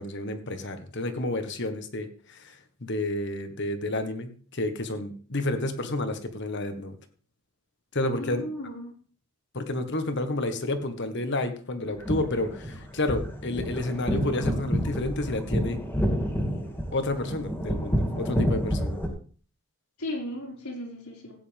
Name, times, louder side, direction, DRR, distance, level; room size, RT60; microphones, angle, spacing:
voice 1, 0.0-7.0 7.9-8.4 9.5-15.8 16.9-19.0, left 2 dB, 55° left, 8 dB, 1.5 m, -30 dB
voice 2, 8.2-8.9 20.0-21.4, left 1 dB, 90° left, -3 dB, 5.2 m, -36 dB
sound 1, 11.8-19.1, equal, 10° left, 2.6 m, -29 dB
15.5 x 9.8 x 3.6 m, 0.43 s
head